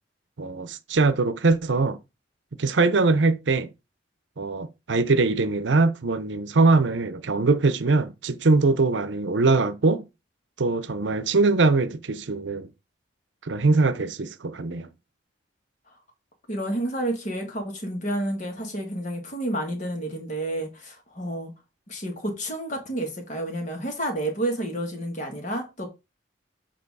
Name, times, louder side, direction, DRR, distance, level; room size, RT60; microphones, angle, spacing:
voice 1, 0.4-2.0 2.6-3.7 4.4-10.0 10.6-12.7 13.4-14.9, right 3 dB, 75° right, 0.7 m, -22 dB
voice 2, 16.5-21.5 21.9-25.9, right 1 dB, 40° left, 1.6 m, -30 dB
7.9 x 3.0 x 4.7 m
head